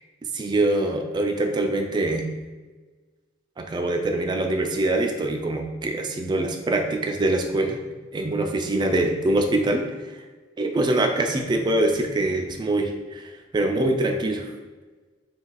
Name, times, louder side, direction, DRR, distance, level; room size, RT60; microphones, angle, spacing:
voice 1, 0.3-2.3 3.6-7.8 8.1-9.8 10.6-14.5, right 2 dB, 25° right, 3 dB, 0.3 m, -24 dB
2.5 x 2.3 x 3.9 m, 1.3 s
head